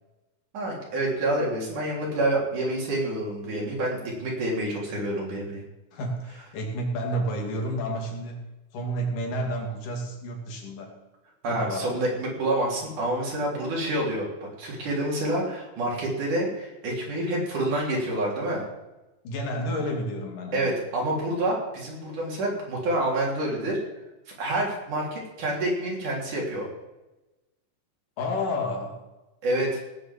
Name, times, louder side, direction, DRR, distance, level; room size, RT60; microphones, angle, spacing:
voice 1, 0.5-5.6 11.4-18.6 20.5-23.8 24.4-26.7 29.4-29.8, right 1 dB, 70° right, -3 dB, 5.1 m, -28 dB
voice 2, 5.9-8.4 8.7-11.0 11.5-11.9 19.2-20.8 28.2-29.0, equal, 75° left, 1 dB, 4.0 m, -30 dB
18.0 x 7.0 x 7.5 m, 1.0 s
omnidirectional pair, 3.8 m